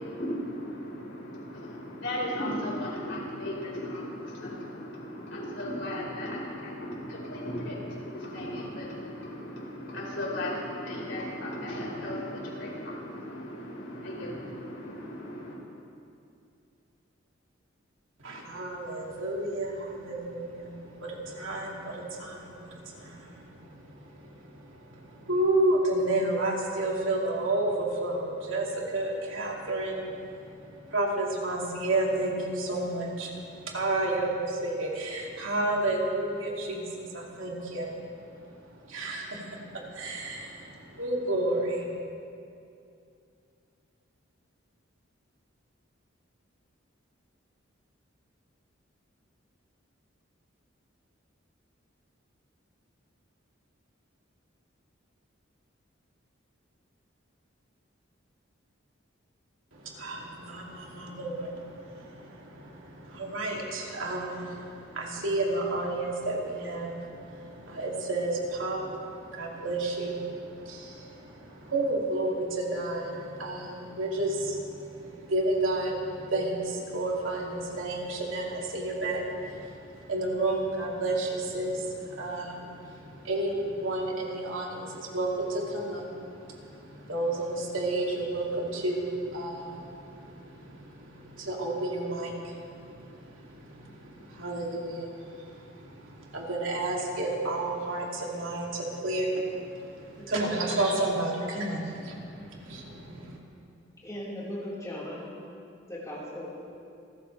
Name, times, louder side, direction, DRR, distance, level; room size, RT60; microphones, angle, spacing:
voice 1, 0.0-15.5, left 1 dB, 70° left, -4 dB, 4.9 m, -36 dB
voice 2, 18.2-41.8 59.7-103.4, right 2 dB, 90° right, -2 dB, 2.9 m, -31 dB
voice 3, 104.0-105.3 105.9-106.5, left 1 dB, 20° left, -7 dB, 4.6 m, -37 dB
28.5 x 13.5 x 3.4 m, 2.5 s
head